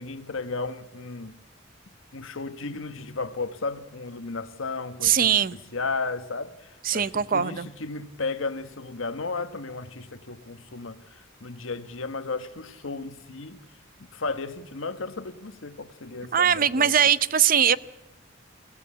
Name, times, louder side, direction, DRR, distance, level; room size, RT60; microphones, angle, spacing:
voice 1, 0.0-1.3 2.1-13.6 14.1-16.9, left 3 dB, 85° left, 1.3 m, -34 dB
voice 2, 5.0-5.6 6.8-7.7 16.3-17.8, right 8 dB, 45° right, 0.6 m, -21 dB
22.0 x 16.0 x 8.5 m
head